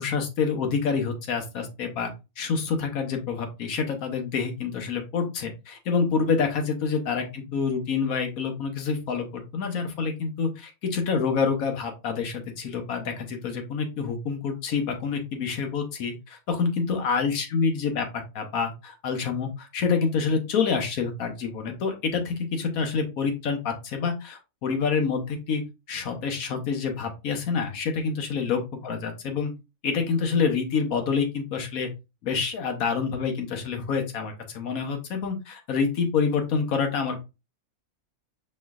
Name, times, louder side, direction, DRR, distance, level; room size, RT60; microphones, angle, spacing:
voice 1, 0.0-2.1 2.4-25.6 25.9-29.5 29.8-31.9 32.2-37.2, left 5 dB, 85° left, 5 dB, 1.3 m, -27 dB
5.3 x 3.1 x 2.3 m, 0.26 s
omnidirectional pair, 1.4 m